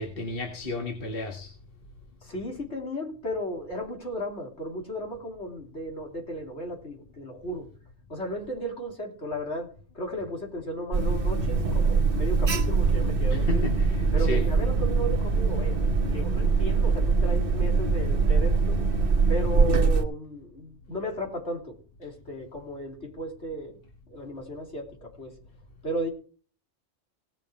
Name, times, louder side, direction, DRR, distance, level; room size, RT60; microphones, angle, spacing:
voice 1, 0.0-1.5 13.3-14.5, left 2 dB, 55° left, 2 dB, 1.9 m, -33 dB
voice 2, 2.2-7.7 8.1-13.7 14.1-18.8 19.3-23.8 24.1-25.3 25.8-26.1, equal, 75° left, 1 dB, 3.6 m, -35 dB
Alarm, 10.9-20.0, right 4 dB, 55° right, 1.2 m, -23 dB
18.0 x 6.7 x 4.6 m, 0.39 s
omnidirectional pair, 1.2 m